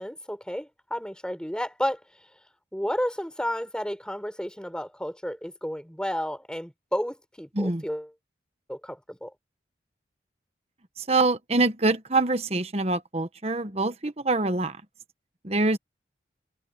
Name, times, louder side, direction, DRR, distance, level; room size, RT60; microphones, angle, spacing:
voice 1, 0.0-2.0 2.7-8.1 8.7-9.3, equal, 5° left, 4.5 m, -32 dB
voice 2, 11.0-14.8 15.4-15.8, right 2 dB, 35° right, 1.2 m, -25 dB
head